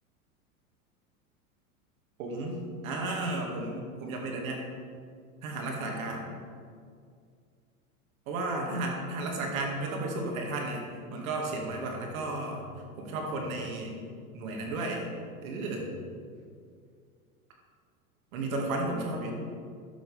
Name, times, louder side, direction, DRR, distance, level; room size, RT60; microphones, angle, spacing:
voice 1, 2.2-4.6 5.4-6.3 8.3-10.8 11.1-12.6 13.0-13.9 14.3-15.1 15.4-15.9 18.3-19.3, right 2 dB, 70° right, 0 dB, 2.4 m, -33 dB
12.5 x 7.5 x 3.6 m, 2.2 s
hypercardioid pair, 110°, 43 cm